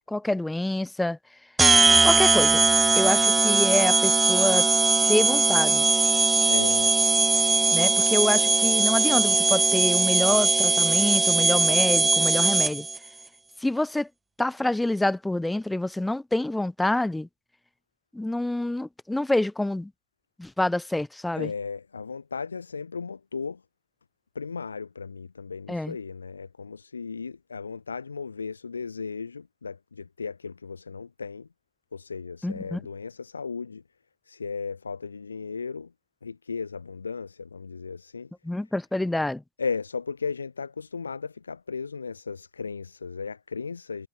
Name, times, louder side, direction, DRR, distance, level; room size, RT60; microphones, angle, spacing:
voice 1, 0.1-1.2 2.0-2.6 2.9-4.6 5.1-5.9 7.7-12.9 13.6-14.1 14.4-17.3 18.1-19.9 20.4-21.5 25.7-25.9 32.4-32.8 38.4-39.4, left 1 dB, 5° left, 1.5 m, -26 dB
sound 1, 1.6-13.0, right 3 dB, 15° right, 0.8 m, -20 dB
voice 2, 6.5-7.0 21.3-23.6 24.3-31.5 31.9-33.8 34.2-35.9 36.2-38.3 39.6-44.1, left 5 dB, 90° left, 2.4 m, -35 dB
hypercardioid pair, 85°, 0 cm